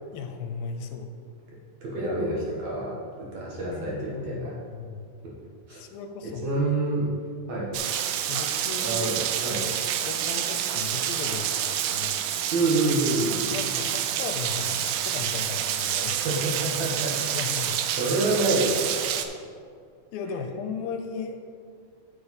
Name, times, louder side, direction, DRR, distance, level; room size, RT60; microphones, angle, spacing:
voice 1, 0.1-1.1 3.6-5.1 5.7-6.6 7.1-7.2 8.3-9.1 10.0-12.3 13.4-16.3 17.3-17.8 20.1-21.4, left 6 dB, 80° left, 6 dB, 2.3 m, -36 dB
voice 2, 1.8-4.6 5.2-5.4 5.7-5.8 6.4-7.1 7.5-7.8 8.8-9.7 12.5-13.5 16.2-17.2 17.9-19.0, right 2 dB, 60° right, -4 dB, 2.2 m, -27 dB
Rain, 7.7-19.3, right 10 dB, 80° right, 2.3 m, -28 dB
8.6 x 7.4 x 4.1 m, 2.2 s
omnidirectional pair, 4.2 m